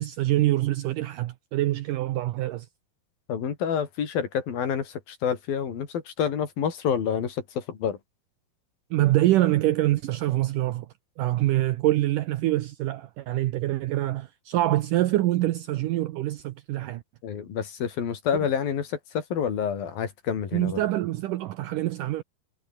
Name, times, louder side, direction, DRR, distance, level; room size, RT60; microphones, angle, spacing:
voice 1, 0.0-2.7 8.9-10.9 11.2-17.0 20.5-22.2, right 15 dB, 75° right, 2.1 m, -25 dB
voice 2, 3.3-8.0 17.2-20.8, left 7 dB, 65° left, 5.0 m, -28 dB
omnidirectional pair, 4.5 m